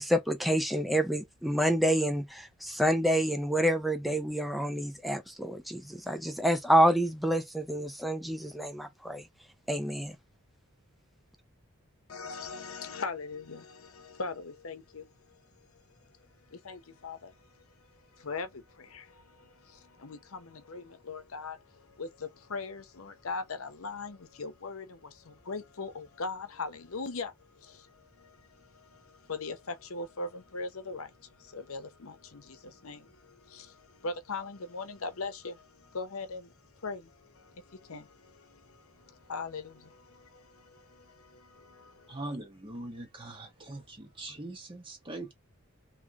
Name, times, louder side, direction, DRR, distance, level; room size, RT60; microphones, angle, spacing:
voice 1, 0.0-9.2 9.7-10.2, equal, ahead, 0.5 m, -28 dB
voice 2, 12.1-15.4 16.0-16.1 16.5-42.2, left 4 dB, 70° left, 0.8 m, -41 dB
voice 3, 42.1-45.3, right 2 dB, 25° right, 1.0 m, -41 dB
3.2 x 3.0 x 3.5 m
head